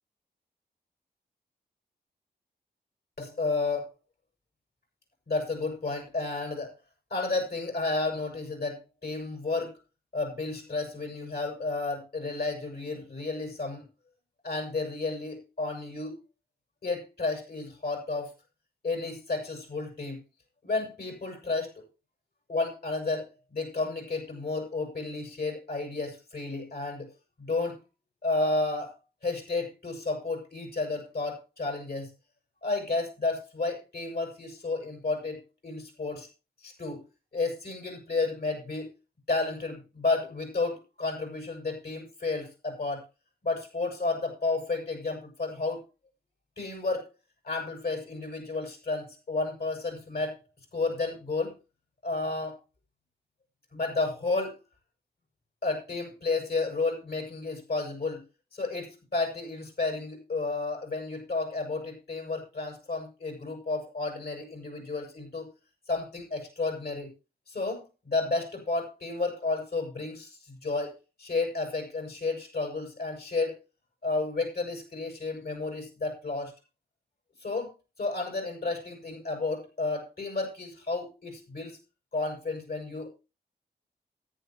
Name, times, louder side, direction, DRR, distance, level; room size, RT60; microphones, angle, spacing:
voice 1, 3.2-3.9 5.3-6.7 7.1-9.7 10.1-13.8 14.4-16.1 16.8-18.3 18.8-20.2 20.6-21.8 22.5-27.1 27.4-27.8 28.2-32.1 32.6-36.3 36.6-37.0 37.3-38.9 39.3-43.0 43.4-45.8 46.6-47.1 47.4-50.4 50.7-51.5 52.0-52.6 53.7-54.5 55.6-58.2 58.5-65.5 65.9-67.1 67.5-70.9 71.2-73.5 74.0-76.5 77.4-77.7 78.0-81.8 82.1-83.1, left 3 dB, 60° left, 3 dB, 7.1 m, -32 dB
13.5 x 10.5 x 3.1 m, 0.30 s
cardioid pair, 45°, 18 cm